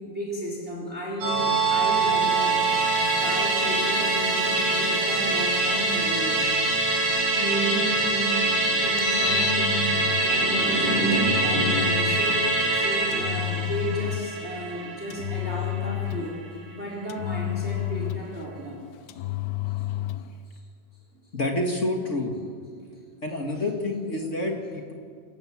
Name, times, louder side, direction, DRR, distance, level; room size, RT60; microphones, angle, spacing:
voice 1, 0.0-2.6 2.9-6.5 6.8-16.4 16.7-18.8 19.1-19.2 19.8-19.9 20.5-20.6, equal, 15° right, -1 dB, 4.2 m, -32 dB
Musical instrument, 1.2-15.9 16.2-16.3, right 2 dB, 60° right, 6.2 m, -24 dB
Engine, 8.8-10.3 11.1-12.3 13.1-14.4 15.1-16.4 17.1-18.4 19.1-20.3, left 16 dB, 85° left, 2.8 m, -31 dB
voice 2, 21.3-22.3 23.2-24.9, left 2 dB, 30° left, 1 dB, 1.3 m, -28 dB
28.5 x 16.0 x 7.6 m, 2.2 s
omnidirectional pair, 4.6 m